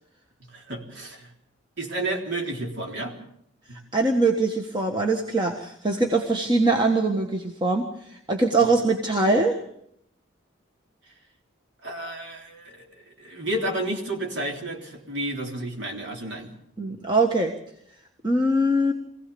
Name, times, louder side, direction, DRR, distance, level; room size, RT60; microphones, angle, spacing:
voice 1, 0.5-1.3 1.8-3.1 3.7-3.8 8.6-8.7 11.8-16.5, right 1 dB, 60° right, 1 dB, 3.7 m, -31 dB
voice 2, 3.9-7.8 8.3-9.6 16.8-17.5 18.2-18.9, right 2 dB, 25° right, 2 dB, 1.5 m, -22 dB
24.0 x 16.5 x 7.0 m, 0.72 s
head